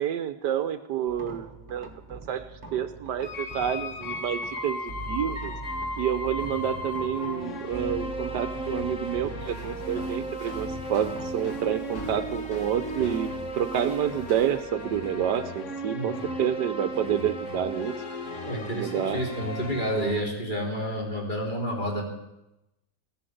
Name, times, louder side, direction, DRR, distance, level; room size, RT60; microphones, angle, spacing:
voice 1, 0.0-5.5 6.0-17.9 18.7-19.2, right 9 dB, 75° right, 11 dB, 1.4 m, -29 dB
sound 1, 1.1-15.3, right 3 dB, 25° right, 1.4 m, -43 dB
sound 2, 3.2-20.2, left 1 dB, 45° left, 1.7 m, -35 dB
Walk footsteps, 9.4-14.6, equal, 70° left, 4.7 m, -47 dB
voice 2, 18.5-22.0, equal, 25° left, -1 dB, 3.5 m, -30 dB
16.5 x 11.5 x 7.8 m, 0.93 s
omnidirectional pair, 1.9 m